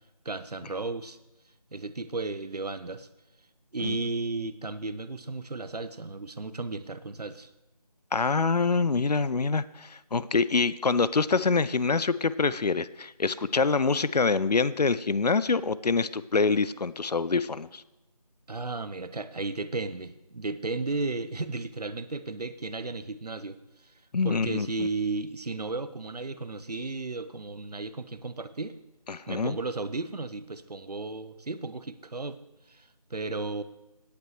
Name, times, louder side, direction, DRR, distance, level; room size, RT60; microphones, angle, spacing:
voice 1, 0.2-1.2 1.7-3.1 3.7-7.5 18.5-23.9 24.2-28.8 29.3-32.4 32.7-33.6, right 3 dB, 75° right, 13 dB, 0.9 m, -34 dB
voice 2, 8.1-17.8 24.1-24.9 29.1-29.6, left 4 dB, 80° left, 17 dB, 0.6 m, -25 dB
18.0 x 8.4 x 3.2 m, 0.97 s
figure-of-eight pair, 170°, 20 cm